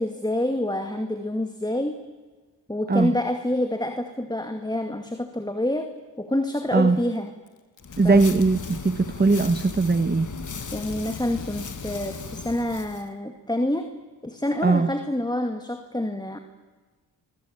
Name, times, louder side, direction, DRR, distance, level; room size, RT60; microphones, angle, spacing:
voice 1, 0.0-2.0 2.7-5.9 6.2-7.3 8.0-8.2 10.7-13.9 14.2-16.4, left 1 dB, 10° left, 6 dB, 2.2 m, -27 dB
voice 2, 6.7-7.0 8.0-10.3 14.6-14.9, right 3 dB, 20° right, 12 dB, 1.1 m, -20 dB
Packing tape duct tape, 7.0-8.0 8.6-8.8 9.4-9.7 10.6-12.6, left 7 dB, 80° left, 2.5 m, -48 dB
sound 1, 7.8-13.1, left 5 dB, 45° left, 1.8 m, -36 dB
28.0 x 22.5 x 8.8 m, 1.3 s
cardioid pair, 55°, 44 cm